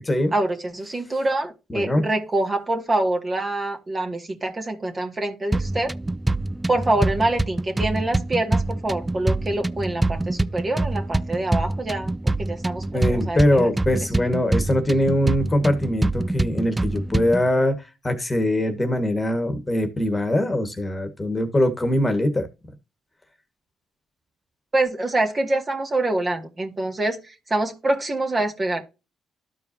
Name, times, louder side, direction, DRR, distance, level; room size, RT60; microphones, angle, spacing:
voice 1, 0.3-5.9 6.7-12.1 12.4-13.7 24.7-28.8, right 2 dB, 30° right, 2.2 m, -25 dB
voice 2, 1.7-2.1 12.9-17.8 18.0-22.5, left 1 dB, 20° left, 1.7 m, -22 dB
sound 1, 5.5-17.5, right 2 dB, 15° right, 0.4 m, -25 dB
12.5 x 4.7 x 2.8 m
supercardioid pair, 55°, 0 cm